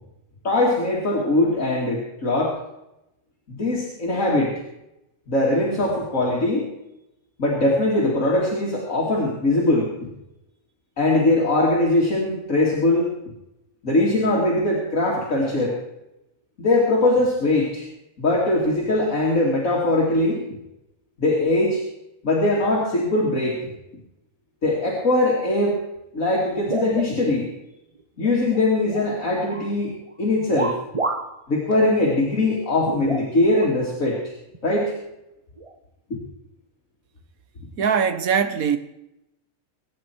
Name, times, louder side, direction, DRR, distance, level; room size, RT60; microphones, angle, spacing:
voice 1, 0.4-2.5 3.5-4.5 5.3-6.7 7.4-9.9 11.0-13.1 13.8-15.8 16.6-17.9 18.2-20.4 21.2-21.8 22.2-23.6 24.6-25.8 26.1-27.5 28.2-30.7 31.5-34.2 34.6-34.9, left 2 dB, 65° left, 2.9 m, -21 dB
sound 1, 26.6-27.6 28.0-29.1 29.4-29.7 30.5-31.4 31.7-31.8 32.8-33.7 34.5-34.6 35.6-35.8, right 3 dB, 25° right, 1.0 m, -30 dB
voice 2, 37.8-38.8, right 7 dB, 80° right, 1.6 m, -21 dB
22.0 x 9.8 x 4.5 m
omnidirectional pair, 1.5 m